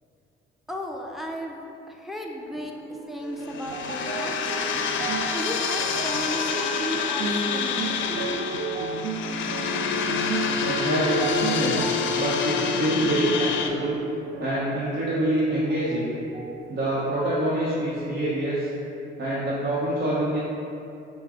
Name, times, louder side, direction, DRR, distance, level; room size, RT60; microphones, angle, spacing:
voice 1, 0.7-2.7 3.1-4.8 5.3-8.4, equal, ahead, 0 dB, 0.5 m, -35 dB
sound 1, 2.5-16.0 16.3-17.3 18.0-18.1, right 4 dB, 90° right, 0.4 m, -34 dB
sound 2, 3.4-13.7, left 6 dB, 75° left, 0.4 m, -27 dB
voice 2, 10.7-14.0 14.4-16.2 16.7-18.7 19.2-20.4, right 1 dB, 65° right, -8 dB, 0.8 m, -26 dB
5.7 x 2.0 x 4.7 m, 2.7 s
cardioid pair, 90°, 20 cm